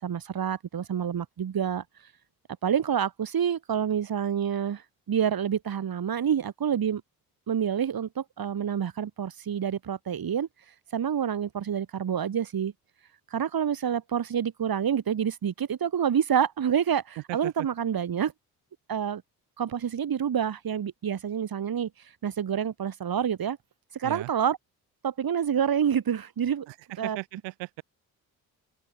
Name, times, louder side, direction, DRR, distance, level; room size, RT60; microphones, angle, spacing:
voice 1, 0.0-1.8 2.6-4.8 5.1-7.0 7.5-10.5 10.9-12.7 13.3-18.3 18.9-19.2 19.6-21.9 22.2-23.6 23.9-24.6 25.0-26.7 27.0-27.2, right 8 dB, 55° right, 4.3 m, -27 dB
voice 2, 17.3-17.7 24.0-24.3 26.7-27.8, right 24 dB, 80° right, 4.0 m, -37 dB
open air
hypercardioid pair, 45°, 44 cm